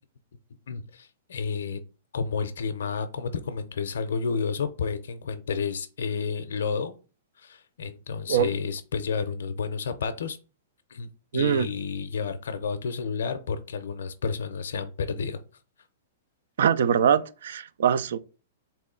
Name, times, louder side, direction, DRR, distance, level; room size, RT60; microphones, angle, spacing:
voice 1, 0.7-1.8 2.1-7.0 7.4-10.4 10.9-15.4, left 5 dB, 80° left, 0.5 m, -31 dB
voice 2, 11.3-11.7 16.6-18.2, right 8 dB, 75° right, 0.4 m, -22 dB
3.7 x 3.0 x 3.7 m
hypercardioid pair, 140°, 0 cm